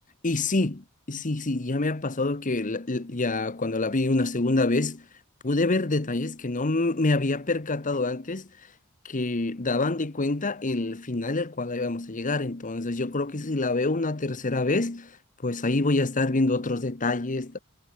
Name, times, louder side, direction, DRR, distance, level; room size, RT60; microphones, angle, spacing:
voice 1, 0.2-5.0 5.4-8.5 9.0-15.1 15.4-17.6, left 2 dB, 35° left, 1.1 m, -26 dB
head